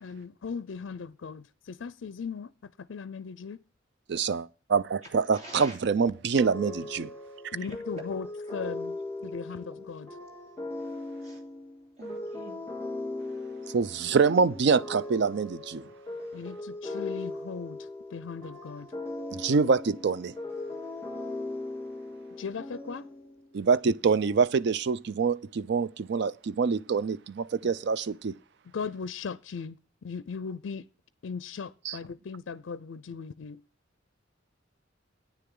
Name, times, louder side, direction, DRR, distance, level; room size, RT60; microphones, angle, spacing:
voice 1, 0.0-3.6 7.5-10.1 16.3-18.9 22.4-23.1 28.7-30.9 31.2-33.6, left 5 dB, 70° left, 0.4 m, -38 dB
voice 2, 4.1-7.1 13.7-15.8 19.3-20.4 23.5-28.3 31.9-32.0, right 5 dB, 60° right, 0.4 m, -25 dB
voice 3, 5.3-5.8 7.9-8.0 8.5-8.6 9.2-9.3 11.2-11.4 12.0-12.6, right 2 dB, 35° right, 3.2 m, -45 dB
sound 1, 6.3-23.5, left 2 dB, 15° left, 2.8 m, -39 dB
10.0 x 9.5 x 3.7 m
head